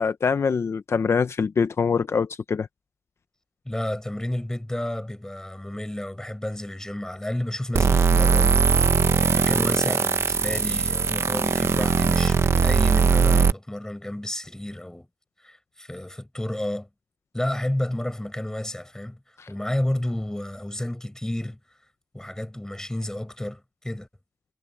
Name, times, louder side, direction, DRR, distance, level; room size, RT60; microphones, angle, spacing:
voice 1, 0.0-2.7, left 5 dB, 70° left, 0.7 m, -24 dB
voice 2, 3.7-15.1 15.4-16.9 17.3-19.2 19.5-21.6 22.1-24.1, left 1 dB, 10° left, 5.5 m, -31 dB
sound 1, 7.7-13.5, right 5 dB, 70° right, 0.9 m, -20 dB
cardioid pair, 60°, 5 cm